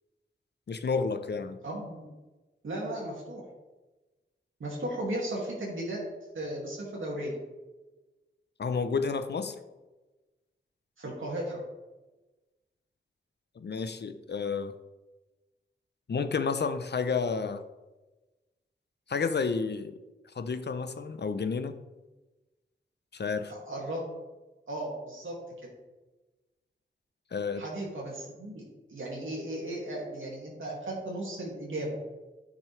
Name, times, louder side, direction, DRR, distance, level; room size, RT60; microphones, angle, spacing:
voice 1, 0.7-1.6 8.6-9.6 13.6-14.7 16.1-17.6 19.1-19.9 20.4-21.8 23.1-23.5 27.3-27.6, left 5 dB, 55° left, 10 dB, 0.6 m, -30 dB
voice 2, 1.6-2.1 2.6-3.4 4.6-6.0 6.3-7.4 11.0-11.6 23.5-24.0 24.7-25.4 27.5-32.0, right 1 dB, 80° right, -3 dB, 2.2 m, -36 dB
10.5 x 6.1 x 3.3 m, 1.2 s
wide cardioid pair, 65°, 20 cm